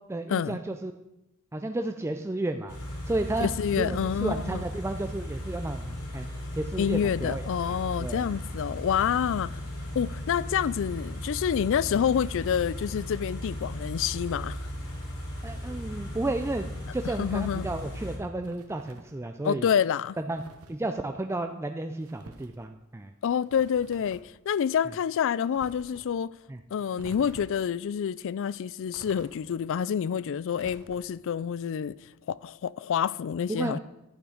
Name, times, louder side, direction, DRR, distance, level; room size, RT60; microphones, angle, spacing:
voice 1, 0.1-0.9 1.5-2.8 3.0-3.5 3.8-6.3 6.5-8.3 15.4-16.7 16.9-19.7 20.2-20.4 20.7-23.1 26.5-26.6 33.5-33.8, right 2 dB, 10° right, 0.4 m, -32 dB
Car / Idling, 2.7-18.2, equal, 90° left, 3.3 m, -36 dB
voice 2, 3.4-4.6 6.8-9.6 9.9-14.6 17.2-17.7 19.4-20.2 23.2-26.3 26.7-32.0 32.3-33.8, left 8 dB, 60° left, 0.3 m, -28 dB
sound 1, 18.4-19.2 20.3-20.8 22.0-22.6 23.5-24.3 25.5-26.1 27.0-27.7 28.9-29.6 30.5-31.3, right 2 dB, 75° right, 1.1 m, -49 dB
11.5 x 8.7 x 5.0 m
head